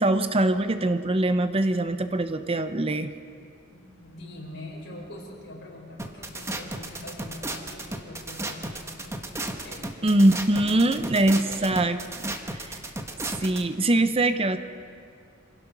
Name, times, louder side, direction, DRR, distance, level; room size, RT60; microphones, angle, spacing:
voice 1, 0.0-3.1 10.0-12.0 12.2-12.8 13.4-14.6, right 1 dB, 30° right, 10 dB, 0.8 m, -23 dB
voice 2, 3.7-10.0 10.5-11.8 12.9-13.0, left 1 dB, 65° left, -1 dB, 4.9 m, -43 dB
sound 1, 6.0-13.6, right 2 dB, 15° right, 1.2 m, -34 dB
26.5 x 16.5 x 6.0 m, 2.4 s
head